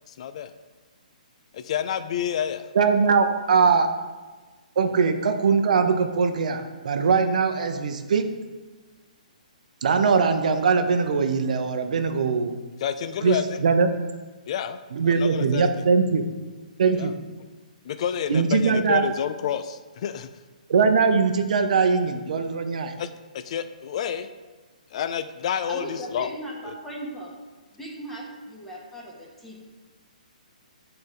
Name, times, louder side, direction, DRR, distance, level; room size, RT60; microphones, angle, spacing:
voice 1, 0.1-0.5 1.5-2.7 12.8-13.6 14.5-15.8 16.9-17.1 17.8-20.3 23.0-23.1 23.3-24.3 24.9-26.3 26.6-26.7, left 9 dB, 50° left, 10 dB, 0.4 m, -29 dB
voice 2, 2.7-3.9 4.8-8.3 9.8-12.5 13.2-13.4 13.6-13.9 14.9-16.2 16.8-17.1 18.3-19.1 20.7-22.9, right 5 dB, 60° right, 7 dB, 0.7 m, -21 dB
voice 3, 25.7-27.3 27.7-29.6, right 1 dB, 5° left, -6 dB, 1.5 m, -37 dB
9.4 x 3.8 x 3.6 m, 1.3 s
hypercardioid pair, 140°, 4 cm